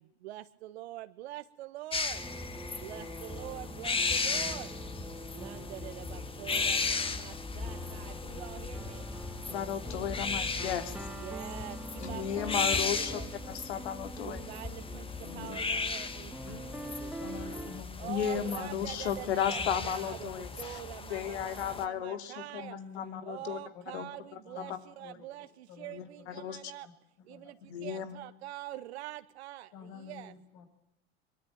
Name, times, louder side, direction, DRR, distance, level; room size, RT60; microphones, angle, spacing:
voice 1, 0.0-2.2 2.8-4.7 5.3-9.1 11.1-13.3 14.2-17.4 18.0-20.3 20.6-22.8 23.2-26.9 27.2-30.3, right 15 dB, 80° right, 10 dB, 1.7 m, -45 dB
sound 1, 1.9-21.9, left 4 dB, 15° left, 1.7 m, -36 dB
sound 2, 2.1-17.8, right 1 dB, 5° right, 2.4 m, -44 dB
voice 2, 9.5-11.1 12.0-13.2 13.5-14.5 15.2-15.6 16.4-16.6 18.1-20.8 21.1-22.6 22.9-23.6 23.9-24.1 24.6-24.8 25.9-26.6 27.6-28.1, left 9 dB, 85° left, 9 dB, 2.7 m, -35 dB
voice 3, 17.2-19.1 19.5-20.8 22.6-25.3 25.7-26.9 27.2-27.5 27.9-28.0 29.7-30.7, left 6 dB, 60° left, 5 dB, 7.5 m, -50 dB
23.0 x 22.5 x 8.9 m, 0.76 s
supercardioid pair, 110°, 32 cm